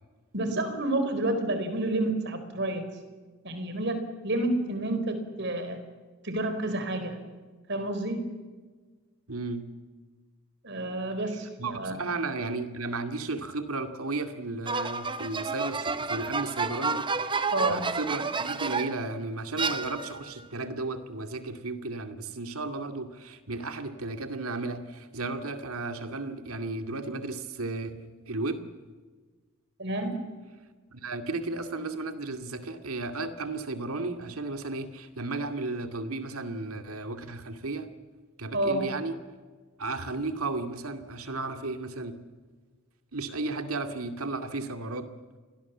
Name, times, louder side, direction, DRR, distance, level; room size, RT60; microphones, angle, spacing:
voice 1, 0.3-2.9 3.4-5.8 6.2-7.2 7.7-8.2 10.6-12.1 17.5-17.9 29.8-30.2 38.5-38.9, right 1 dB, 55° right, 8 dB, 4.3 m, -29 dB
voice 2, 9.3-9.6 11.6-17.1 17.7-28.6 30.9-37.9 38.4-39.2 39.8-42.2 43.1-45.1, right 3 dB, 85° right, 8 dB, 2.3 m, -34 dB
sound 1, 14.7-19.1 19.6-20.3, right 4 dB, 20° right, 0.9 m, -30 dB
29.0 x 22.0 x 7.4 m, 1.4 s
head